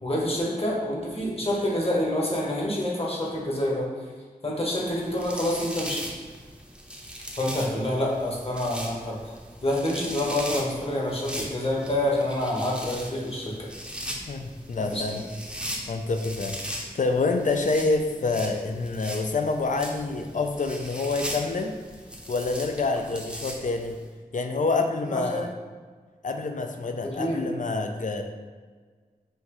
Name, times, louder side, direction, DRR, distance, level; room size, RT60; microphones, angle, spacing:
voice 1, 0.0-3.9 4.4-6.1 7.4-9.3 9.6-13.7 14.8-15.2 25.1-25.4 27.0-27.5, left 1 dB, 40° left, -4 dB, 1.1 m, -27 dB
sound 1, 4.8-24.0, equal, 5° right, 0.7 m, -39 dB
voice 2, 14.3-15.2 15.9-21.8 22.3-24.0 24.3-25.5 26.2-28.2, left 3 dB, 55° left, 5 dB, 0.4 m, -27 dB
5.6 x 2.7 x 3.0 m, 1.5 s
wide cardioid pair, 60°, 16 cm